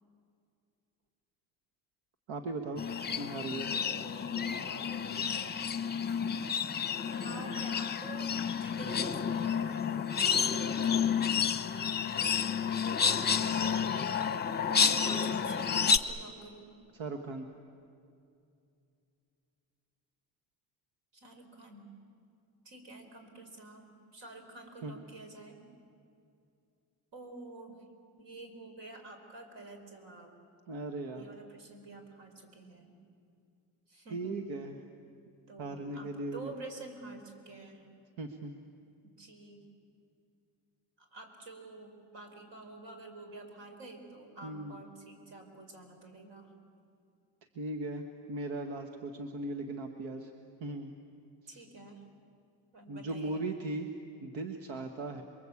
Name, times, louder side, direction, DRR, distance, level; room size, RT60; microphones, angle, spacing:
voice 1, 2.3-2.8 3.2-3.7 7.2-7.6 16.9-17.5 24.8-24.9 30.7-31.3 34.1-34.8 35.6-36.5 38.2-38.5 44.4-44.8 47.5-50.3 50.6-50.9 51.4-51.6 52.9-53.9 54.2-55.2, right 2 dB, 90° right, 6 dB, 1.6 m, -38 dB
sound 1, 2.8-16.0, left 6 dB, 20° left, 0.8 m, -30 dB
voice 2, 3.5-5.5 7.0-10.4 10.8-11.2 12.6-16.7 21.1-21.9 22.6-25.6 27.1-27.8 28.2-30.3 31.2-32.9 33.9-34.4 35.5-37.8 39.0-39.6 41.0-46.5 51.5-52.0 52.7-53.5, right 2 dB, 65° right, 4 dB, 4.9 m, -49 dB
28.0 x 22.5 x 8.5 m, 2.5 s
cardioid pair, 135°, 45 cm